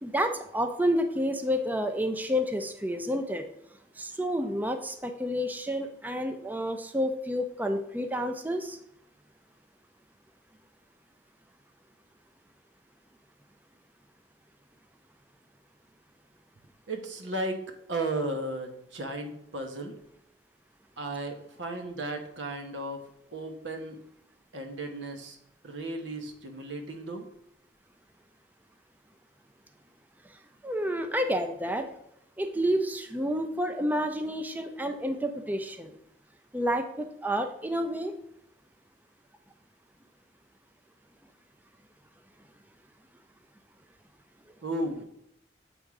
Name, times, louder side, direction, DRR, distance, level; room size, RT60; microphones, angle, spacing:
voice 1, 0.0-3.5 4.0-8.8 30.6-31.9 32.4-35.9 36.5-38.1, equal, 10° right, 6 dB, 0.4 m, -29 dB
voice 2, 16.9-17.6 17.9-20.0 21.0-23.0 23.3-24.0 24.5-25.4 25.6-27.3 44.6-45.0, right 2 dB, 90° right, 4 dB, 1.1 m, -34 dB
7.8 x 3.6 x 4.7 m, 0.75 s
head